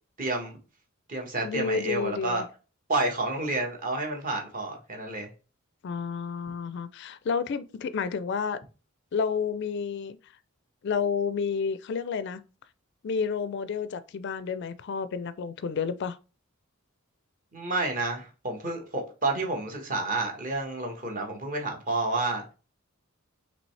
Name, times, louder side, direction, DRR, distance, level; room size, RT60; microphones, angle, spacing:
voice 1, 0.2-0.5 1.1-2.4 2.9-5.3 17.5-22.5, right 2 dB, 40° right, 1.2 m, -30 dB
voice 2, 1.4-2.4 5.8-8.6 9.1-10.3 10.8-12.4 13.0-16.2, left 5 dB, 55° left, 0.4 m, -30 dB
5.2 x 3.1 x 3.2 m
head